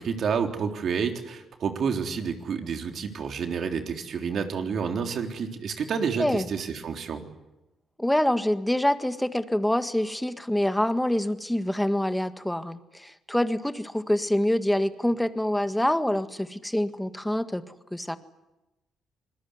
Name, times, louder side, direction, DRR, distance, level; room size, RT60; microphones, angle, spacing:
voice 1, 0.0-7.3, right 6 dB, 60° right, 4 dB, 3.6 m, -29 dB
voice 2, 8.0-17.6 17.9-18.2, left 1 dB, 5° left, 10 dB, 1.7 m, -26 dB
26.5 x 20.5 x 9.7 m, 0.98 s
cardioid pair, 90°, 0 cm